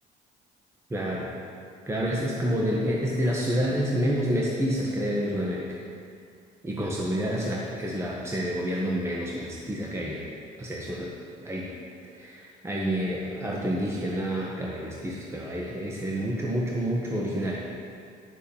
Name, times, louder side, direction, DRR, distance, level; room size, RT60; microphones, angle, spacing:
voice 1, 0.9-1.3 1.9-5.7 6.6-10.2 10.6-11.1 11.4-11.7 12.2-17.7, equal, 15° right, -3 dB, 1.3 m, -28 dB
10.5 x 6.2 x 7.2 m, 2.3 s
cardioid pair, 110°, 17 cm